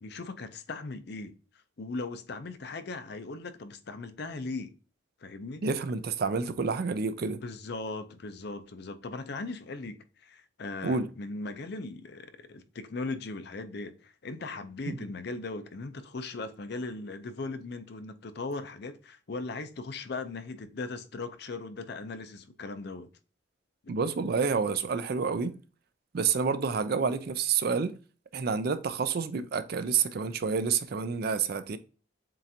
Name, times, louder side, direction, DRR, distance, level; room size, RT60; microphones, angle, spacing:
voice 1, 0.0-1.3 1.8-4.7 5.2-5.6 7.3-23.1 23.8-23.9, left 3 dB, 55° left, 0.5 m, -38 dB
voice 2, 5.6-7.4 10.8-11.1 14.9-15.0 23.9-25.5 26.1-28.0 28.3-31.8, right 5 dB, 50° right, 0.4 m, -29 dB
7.4 x 2.5 x 2.8 m
head